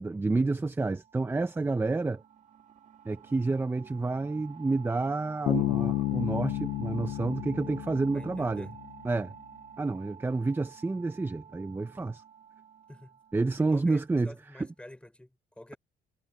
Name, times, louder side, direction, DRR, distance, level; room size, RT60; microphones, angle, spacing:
voice 1, 0.0-2.2 3.0-8.7 9.0-9.3 9.8-12.2 13.3-14.7, right 3 dB, 15° right, 0.9 m, -29 dB
sound 1, 0.9-14.3, right 8 dB, 45° right, 2.5 m, -50 dB
Bass guitar, 5.5-9.0, left 16 dB, 85° left, 0.7 m, -31 dB
voice 2, 8.1-8.7 12.9-13.2 13.6-15.8, left 1 dB, 5° left, 4.0 m, -48 dB
cardioid pair, 110°, 17 cm